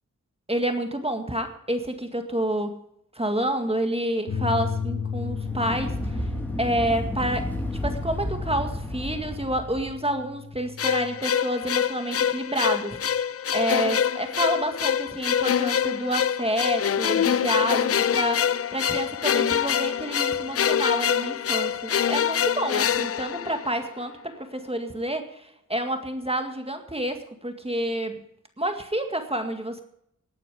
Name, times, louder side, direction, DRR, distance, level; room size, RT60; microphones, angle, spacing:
voice 1, 0.5-2.8 3.2-6.1 6.6-7.5 7.8-13.0 13.5-28.2 28.6-29.8, right 1 dB, 20° right, 6 dB, 2.0 m, -29 dB
sound 1, 4.3-11.2, left 6 dB, 85° left, 2.9 m, -34 dB
sound 2, 5.1-10.0, equal, 5° left, 3.4 m, -32 dB
sound 3, 10.8-24.0, left 8 dB, 45° left, 0.4 m, -25 dB
18.5 x 9.2 x 5.0 m, 0.75 s
cardioid pair, 60°, 32 cm